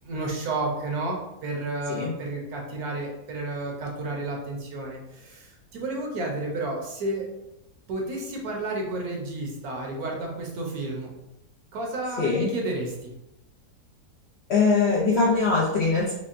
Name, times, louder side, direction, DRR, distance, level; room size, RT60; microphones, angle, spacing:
voice 1, 0.0-7.3 7.9-11.1 11.7-13.1, right 2 dB, 70° right, 0 dB, 1.2 m, -31 dB
voice 2, 12.2-12.5 14.5-16.1, left 4 dB, 65° left, -4 dB, 0.6 m, -22 dB
5.2 x 2.2 x 2.5 m, 0.89 s
omnidirectional pair, 1.7 m